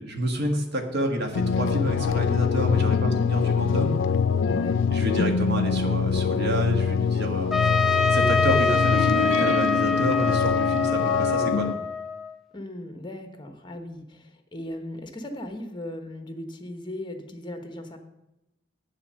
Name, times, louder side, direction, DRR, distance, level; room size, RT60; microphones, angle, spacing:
voice 1, 0.0-4.0 4.9-7.6 8.1-11.8, equal, 60° right, 3 dB, 1.6 m, -29 dB
sound 1, 1.4-11.8, left 5 dB, 80° left, 0.4 m, -24 dB
voice 2, 4.5-4.8 12.5-18.0, left 1 dB, 25° left, 6 dB, 1.1 m, -37 dB
Trumpet, 7.5-12.3, left 4 dB, ahead, 0.8 m, -25 dB
8.7 x 7.2 x 6.4 m, 0.93 s
head